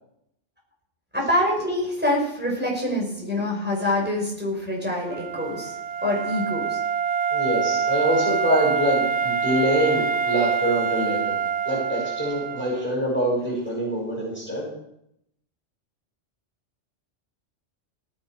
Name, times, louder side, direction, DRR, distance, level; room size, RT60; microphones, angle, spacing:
voice 1, 1.1-5.8 6.0-6.8, left 1 dB, 10° right, -2 dB, 5.3 m, -25 dB
Wind instrument woodwind instrument, 5.0-12.9, right 6 dB, 45° right, 0.6 m, -26 dB
voice 2, 7.3-11.4 11.7-14.7, equal, 10° left, -4 dB, 6.3 m, -25 dB
17.5 x 10.0 x 4.9 m, 0.77 s
omnidirectional pair, 1.3 m